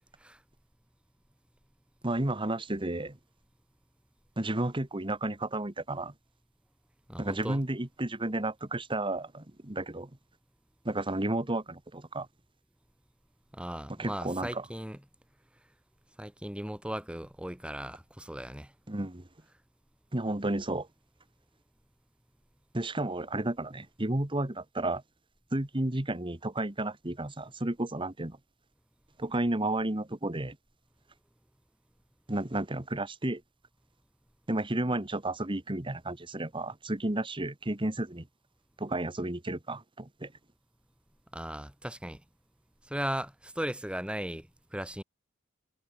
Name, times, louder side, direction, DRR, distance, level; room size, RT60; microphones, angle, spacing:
voice 1, 2.0-3.2 4.4-6.1 7.2-10.1 10.8-12.3 14.0-14.6 18.9-19.3 20.1-20.9 22.7-25.0 25.5-28.4 29.2-30.6 32.3-33.4 34.5-38.3 38.8-40.3, right 1 dB, 25° right, 1.4 m, -32 dB
voice 2, 7.1-7.6 13.5-15.0 16.2-18.7 41.3-42.2 42.9-45.0, right 1 dB, 5° right, 1.9 m, -37 dB
head